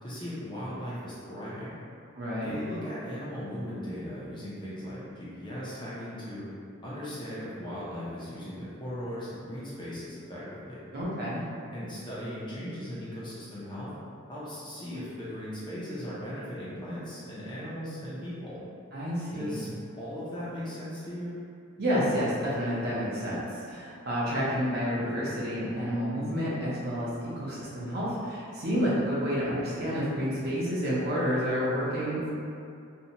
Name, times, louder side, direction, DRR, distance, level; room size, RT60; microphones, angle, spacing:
voice 1, 0.0-1.8 2.4-6.4 6.8-10.8 11.7-13.9 14.3-18.6 19.3-19.7 20.0-21.3, equal, 20° left, -9 dB, 0.5 m, -38 dB
voice 2, 2.1-2.5 10.9-11.4 18.9-19.6 21.8-32.3, equal, 45° right, -8 dB, 0.6 m, -29 dB
2.6 x 2.1 x 2.7 m, 2.4 s
head